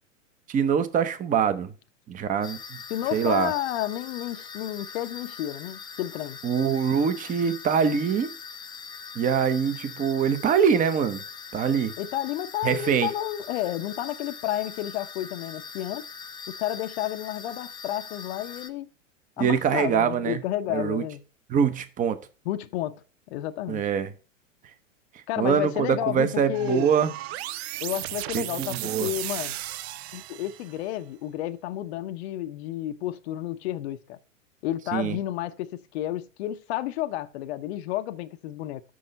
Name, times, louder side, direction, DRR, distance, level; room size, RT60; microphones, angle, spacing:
voice 1, 0.5-1.7 2.1-2.8 3.1-3.5 6.4-8.3 9.1-11.2 11.5-11.9 12.6-13.1 19.4-20.4 20.7-21.0 21.5-22.2 23.7-24.1 25.4-27.1 28.3-29.1 34.9-35.2, right 7 dB, 20° right, 0.7 m, -24 dB
sound 1, 2.4-18.7, left 5 dB, 10° left, 0.6 m, -42 dB
voice 2, 2.9-6.4 12.0-16.0 16.5-18.9 19.4-21.2 22.5-23.0 23.3-23.8 25.3-26.9 27.8-29.6 30.1-34.2 34.6-38.8, left 13 dB, 55° left, 0.7 m, -31 dB
sound 2, 26.5-30.8, right 15 dB, 55° right, 0.4 m, -35 dB
6.3 x 5.4 x 6.6 m
hypercardioid pair, 110°, 39 cm